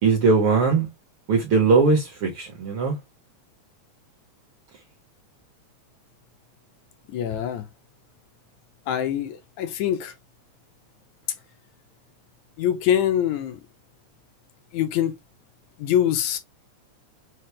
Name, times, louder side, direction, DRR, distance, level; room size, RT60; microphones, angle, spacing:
voice 1, 0.0-0.9 1.3-3.0, right 4 dB, 65° right, 1.3 m, -20 dB
voice 2, 7.1-7.7 8.9-10.1 12.6-13.6 14.7-15.1 15.8-16.4, left 10 dB, 80° left, 2.0 m, -24 dB
5.8 x 2.0 x 3.1 m
omnidirectional pair, 3.4 m